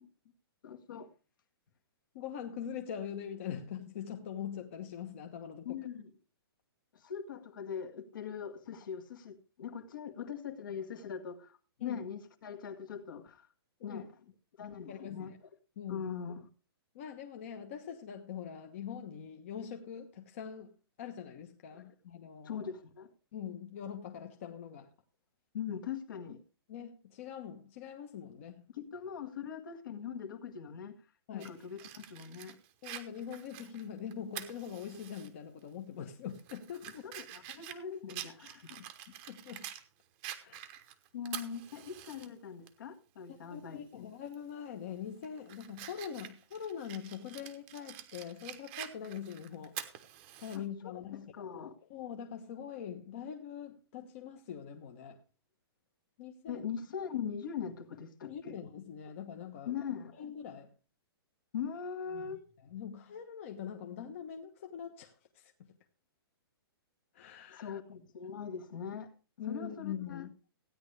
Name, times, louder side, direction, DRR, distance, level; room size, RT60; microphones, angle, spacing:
voice 1, 0.6-1.1 5.7-6.1 6.9-13.5 13.8-14.1 14.6-15.3 15.9-16.5 21.7-21.9 22.4-23.1 25.5-26.4 28.7-31.0 31.3-32.6 37.0-38.8 40.4-40.6 41.1-44.0 50.5-51.9 56.5-58.5 59.7-60.2 61.5-62.4 67.5-69.1 69.5-70.3, left 7 dB, 55° left, 1.8 m, -41 dB
voice 2, 2.1-5.8 11.8-12.0 13.8-14.0 14.9-15.4 15.8-16.1 16.9-20.7 21.0-22.6 23.3-24.9 26.7-28.7 31.3-31.5 32.8-37.0 39.3-39.7 40.4-40.6 43.3-49.8 50.4-51.3 51.9-55.2 56.2-56.6 58.3-59.7 60.2-60.7 62.1-62.3 62.6-65.7 67.1-67.7 69.4-70.3, left 8 dB, 30° left, 1.1 m, -43 dB
Fire, 31.4-35.3 35.7-35.8 36.3-39.8 40.2-42.3 42.7-42.8 44.3-44.5 45.0-50.6, right 12 dB, 20° right, 1.0 m, -47 dB
16.0 x 9.7 x 3.3 m
hypercardioid pair, 175°, 13 cm